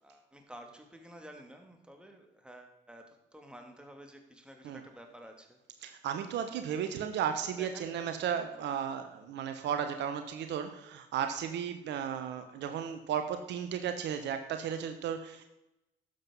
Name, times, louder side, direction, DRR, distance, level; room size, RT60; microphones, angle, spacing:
voice 1, 0.0-3.0 3.3-5.6 7.6-8.1, right 1 dB, 5° right, 3 dB, 2.8 m, -51 dB
voice 2, 5.8-15.5, right 8 dB, 70° right, 8 dB, 1.1 m, -34 dB
12.0 x 7.9 x 5.5 m, 0.94 s
hypercardioid pair, 50°, 19 cm